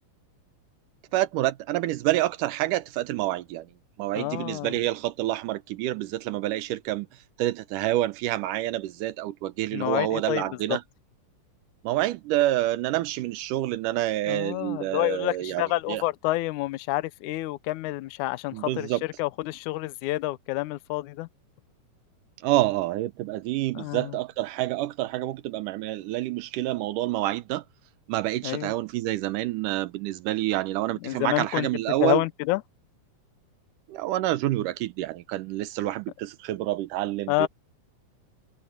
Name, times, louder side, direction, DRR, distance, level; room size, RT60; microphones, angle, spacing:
voice 1, 1.1-3.7 4.0-7.1 7.4-10.8 11.8-16.0 18.5-19.0 22.4-27.6 28.1-32.2 33.9-37.5, right 15 dB, 80° right, 2.4 m, -28 dB
voice 2, 4.2-4.7 9.7-10.4 10.7-10.8 14.3-18.9 19.2-21.3 23.8-24.1 28.4-28.7 31.0-31.7 32.0-32.6 37.3-37.5, left 18 dB, 75° left, 2.0 m, -28 dB
omnidirectional pair, 3.8 m